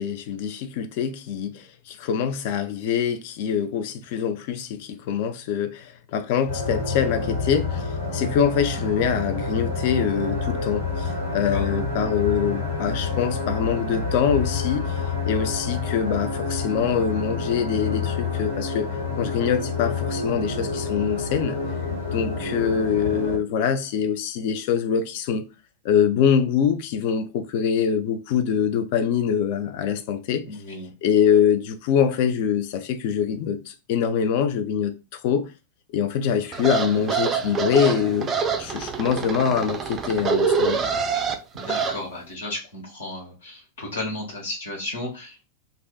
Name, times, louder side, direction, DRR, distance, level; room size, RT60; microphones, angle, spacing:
voice 1, 0.0-7.8 8.1-14.9 15.3-21.6 22.1-25.5 25.8-30.4 31.0-34.9 35.2-35.5 35.9-38.3 38.6-40.8, left 7 dB, 50° left, 0.4 m, -24 dB
sound 1, 6.5-23.4, left 4 dB, 80° left, 1.4 m, -28 dB
voice 2, 30.5-30.9 41.1-41.2 41.6-45.5, left 2 dB, 65° left, 1.0 m, -34 dB
sound 2, 36.5-42.0, right 5 dB, 25° right, 0.3 m, -25 dB
2.5 x 2.4 x 2.2 m
figure-of-eight pair, 90°, 0 cm